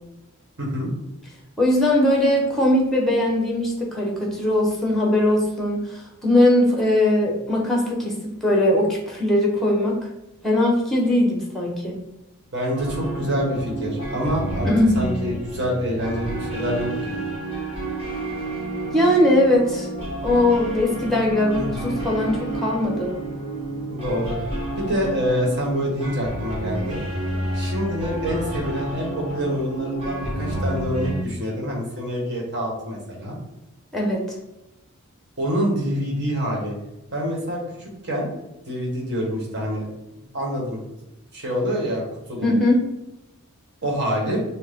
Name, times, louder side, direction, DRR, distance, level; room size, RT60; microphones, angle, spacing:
voice 1, 0.6-0.9 12.5-14.7 14.9-17.2 21.5-21.9 23.9-24.4 24.8-27.0 27.5-33.4 35.4-36.7 37.1-38.3 38.7-39.8 40.3-40.8 41.3-42.0 42.3-42.5 43.8-44.4, equal, 50° right, -1 dB, 1.4 m, -26 dB
voice 2, 1.6-10.1 10.4-12.0 14.6-15.0 18.9-19.9 20.2-23.2 33.9-34.2 42.4-42.8, left 1 dB, ahead, -1 dB, 1.0 m, -20 dB
sound 1, 12.8-31.2, right 1 dB, 25° right, 1.3 m, -30 dB
6.2 x 2.2 x 3.7 m, 0.92 s
head